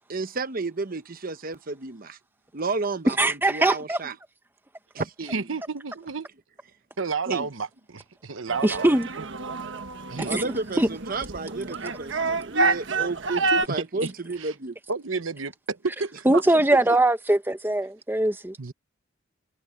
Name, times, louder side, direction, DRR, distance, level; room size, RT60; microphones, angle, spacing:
voice 1, 0.1-2.2 2.5-4.2 4.9-5.5 7.3-7.5 10.2-14.8 16.3-16.4, right 3 dB, 45° right, 1.0 m, -31 dB
voice 2, 3.1-4.0 8.6-9.1 10.3-10.4 10.8-10.9 16.3-18.6, right 1 dB, 10° right, 0.9 m, -21 dB
voice 3, 5.3-6.3 7.0-8.9 9.2-9.3 10.1-10.3 13.9-14.1 14.4-14.5 14.9-16.4 18.6-18.7, right 4 dB, 80° right, 1.1 m, -31 dB
sound 1, 8.5-13.7, right 3 dB, 65° right, 1.4 m, -28 dB
head